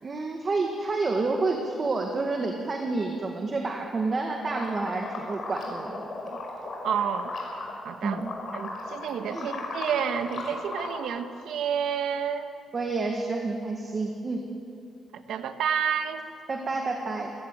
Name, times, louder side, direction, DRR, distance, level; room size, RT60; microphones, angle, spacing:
voice 1, 0.0-6.4 8.0-8.3 9.3-9.5 12.7-14.4 16.5-17.3, right 3 dB, 30° right, 2 dB, 1.9 m, -29 dB
sound 1, 4.5-7.8 8.1-11.0, left 3 dB, 45° left, 5.9 m, -36 dB
voice 2, 6.8-7.3 7.8-8.2 8.5-12.5 15.1-16.2, right 8 dB, 80° right, 8 dB, 1.5 m, -29 dB
28.0 x 16.5 x 8.0 m, 2.6 s
cardioid pair, 140°, 0 cm